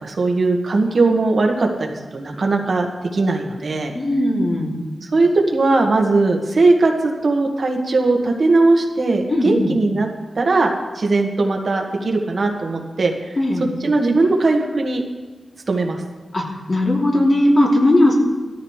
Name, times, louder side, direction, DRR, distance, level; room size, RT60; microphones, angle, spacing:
voice 1, 0.0-2.9 3.1-3.9 5.0-10.1 10.3-10.7 10.9-13.3 13.8-15.0 15.7-16.0, right 3 dB, 55° right, 1 dB, 1.6 m, -19 dB
voice 2, 3.9-4.7 9.3-9.7 13.4-13.7 16.3-18.1, left 1 dB, 45° left, -3 dB, 2.9 m, -17 dB
17.0 x 13.5 x 3.3 m, 1.3 s
wide cardioid pair, 95°, 0 cm